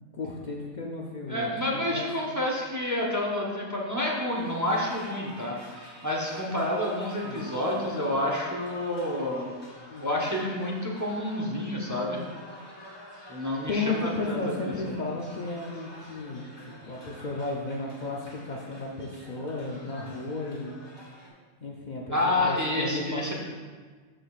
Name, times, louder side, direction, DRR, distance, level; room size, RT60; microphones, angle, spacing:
voice 1, 0.1-2.1 7.2-7.4 9.9-10.2 13.7-16.5 16.8-20.7 21.6-23.3, left 3 dB, 45° left, -2 dB, 0.7 m, -34 dB
voice 2, 1.3-5.5 6.0-9.5 10.0-12.2 13.3-15.0 22.1-23.3, left 1 dB, 15° right, -3 dB, 0.8 m, -29 dB
sound 1, 4.3-21.3, left 1 dB, 20° left, 1.4 m, -48 dB
13.5 x 5.0 x 2.4 m, 1.5 s
omnidirectional pair, 1.2 m